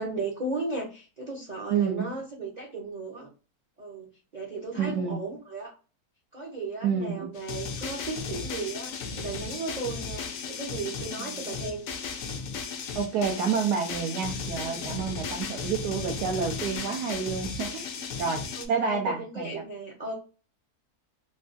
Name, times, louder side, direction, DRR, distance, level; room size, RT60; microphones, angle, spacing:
voice 1, 0.0-3.3 3.8-5.8 6.3-11.9 14.6-14.9 18.6-20.1, right 3 dB, 50° right, -2 dB, 0.5 m, -35 dB
voice 2, 1.7-2.1 4.8-5.2 6.8-7.3 11.2-11.4 12.9-19.6, right 6 dB, 90° right, 1 dB, 1.1 m, -29 dB
sound 1, 7.3-18.7, left 5 dB, 70° left, 0.9 m, -35 dB
3.3 x 2.2 x 2.5 m, 0.34 s
omnidirectional pair, 1.7 m